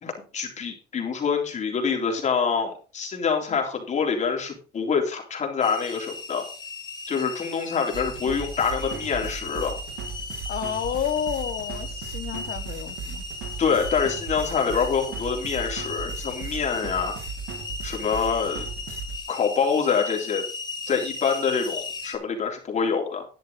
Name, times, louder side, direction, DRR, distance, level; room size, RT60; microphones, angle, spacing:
voice 1, 0.0-6.4 7.1-9.8 13.6-17.2 17.8-18.7 19.3-20.4 20.9-23.3, left 6 dB, 40° left, 3.6 m, -26 dB
sound 1, 5.6-22.2, left 4 dB, 20° left, 2.6 m, -37 dB
sound 2, 7.9-19.2, right 5 dB, 85° right, 1.9 m, -37 dB
voice 2, 10.5-13.2, left 9 dB, 55° left, 1.3 m, -30 dB
11.5 x 10.5 x 4.0 m
cardioid pair, 130°, 19 cm